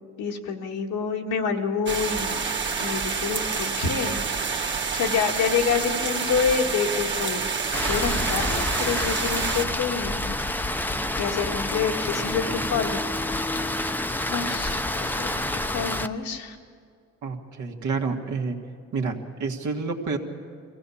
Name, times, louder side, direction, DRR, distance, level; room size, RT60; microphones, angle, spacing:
voice 1, 0.2-2.5 2.8-7.5 7.8-10.4 11.2-13.3 14.3-16.6, left 6 dB, 85° left, 1 dB, 1.9 m, -28 dB
sound 1, 1.9-9.6, right 5 dB, 40° right, 1.7 m, -28 dB
Rain, 7.7-16.1, left 1 dB, 5° left, 0.7 m, -28 dB
voice 2, 17.2-18.6 18.9-20.2, right 4 dB, 75° right, 2 dB, 1.9 m, -29 dB
23.5 x 16.5 x 7.1 m, 2.3 s
cardioid pair, 90°, 30 cm